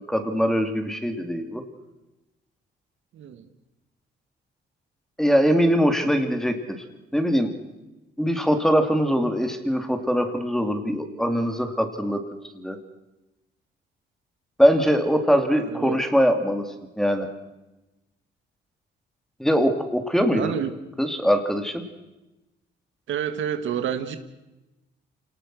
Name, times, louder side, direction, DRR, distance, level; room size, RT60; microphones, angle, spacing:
voice 1, 0.1-1.6 5.2-6.8 7.1-7.5 8.2-12.2 12.5-12.8 14.6-16.6 17.0-17.3 19.4-20.5 21.0-21.8, equal, ahead, 7 dB, 2.9 m, -22 dB
voice 2, 3.1-3.5 15.6-16.0 20.2-20.7 23.1-24.2, right 9 dB, 75° right, 9 dB, 1.8 m, -29 dB
27.0 x 18.5 x 6.3 m, 1.0 s
cardioid pair, 90°, 20 cm